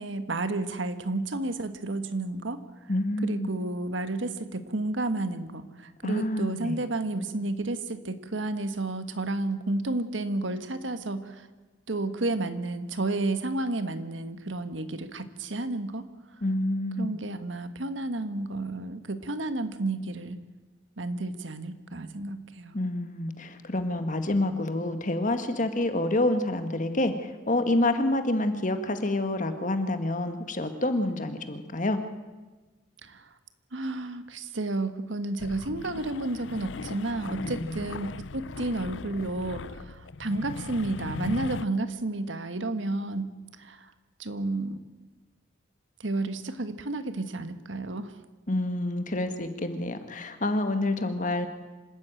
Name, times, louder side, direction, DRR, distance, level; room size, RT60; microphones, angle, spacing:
voice 1, 0.0-11.4 11.9-16.1 17.0-20.4 21.0-22.7 33.0-33.3 33.7-43.3 43.6-43.9 44.2-44.8 46.0-48.2, right 2 dB, 80° right, 10 dB, 1.5 m, -31 dB
voice 2, 2.9-3.5 6.0-6.8 16.4-17.1 22.7-32.0 37.4-37.9 48.5-51.5, left 1 dB, 45° left, 8 dB, 1.7 m, -28 dB
sound 1, 35.4-41.7, left 4 dB, 70° left, 0.6 m, -38 dB
26.0 x 13.0 x 9.1 m, 1.2 s
head